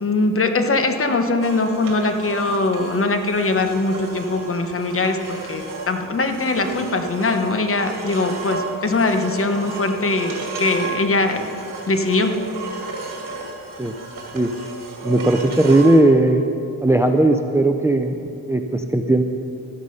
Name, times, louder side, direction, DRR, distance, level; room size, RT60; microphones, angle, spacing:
voice 1, 0.0-11.5 11.9-12.4, left 3 dB, 35° left, 6 dB, 1.1 m, -21 dB
sound 1, 1.4-16.0, right 3 dB, 60° right, 2.4 m, -33 dB
voice 2, 15.0-16.4 16.8-19.2, right 2 dB, 5° right, 6 dB, 0.6 m, -17 dB
13.5 x 10.0 x 5.5 m, 2.8 s
cardioid pair, 95°, 37 cm